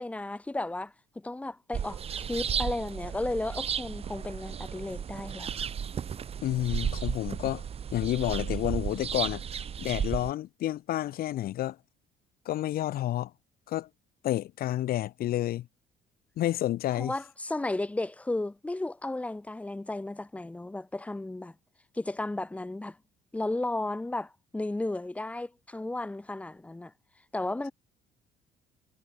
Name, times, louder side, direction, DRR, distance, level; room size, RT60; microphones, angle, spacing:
voice 1, 0.0-5.5 17.0-21.6 21.9-23.0 23.3-26.9 27.3-27.7, left 2 dB, 10° left, 0.6 m, -34 dB
sound 1, 1.7-10.3, right 8 dB, 35° right, 0.8 m, -34 dB
voice 2, 6.4-7.6 7.9-9.4 9.8-11.8 12.5-13.3 13.7-13.9 14.2-15.7 16.4-17.1, left 13 dB, 60° left, 0.8 m, -30 dB
cardioid pair, 110°, 17 cm